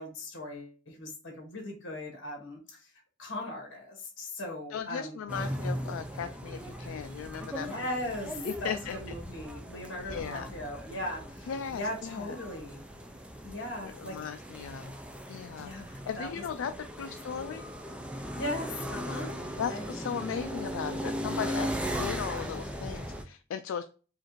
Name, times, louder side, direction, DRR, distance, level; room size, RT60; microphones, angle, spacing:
voice 1, 0.0-2.9 3.2-5.2 7.6-12.8 13.4-14.2 15.5-16.5 18.3-19.4 19.7-19.9, left 1 dB, 60° left, 1 dB, 1.7 m, -38 dB
voice 2, 4.7-7.9 8.4-9.0 10.1-10.5 11.5-12.3 13.8-15.0 15.3-15.7 16.1-16.7 17.0-17.6 19.6-23.8, left 7 dB, 80° left, 8 dB, 0.3 m, -37 dB
sound 1, 5.3-23.2, equal, 5° right, 0.3 m, -38 dB
4.8 x 2.5 x 3.0 m, 0.36 s
head